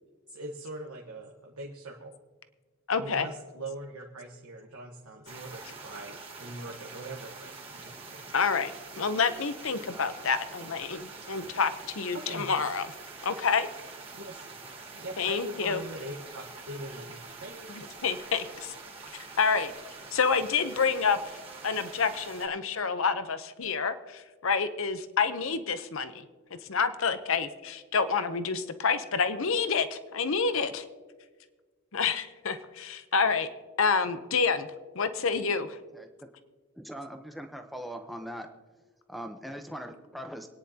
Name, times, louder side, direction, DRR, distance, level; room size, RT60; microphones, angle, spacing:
voice 1, 0.3-2.2 3.0-8.2 12.1-12.5 14.1-14.5 14.9-18.0, right 1 dB, 75° right, -1 dB, 1.2 m, -42 dB
voice 2, 2.9-3.3 8.3-12.9 13.2-13.7 15.2-15.8 17.7-18.7 19.4-19.7 20.1-26.2 26.6-30.8 31.9-33.5 33.8-34.7 35.0-35.8, left 5 dB, 60° left, 11 dB, 0.8 m, -28 dB
sound 1, 5.3-22.5, right 3 dB, 25° right, 1.8 m, -45 dB
voice 3, 36.8-38.5 39.1-40.5, equal, ahead, 6 dB, 0.8 m, -40 dB
26.5 x 9.8 x 2.8 m, 1.4 s
head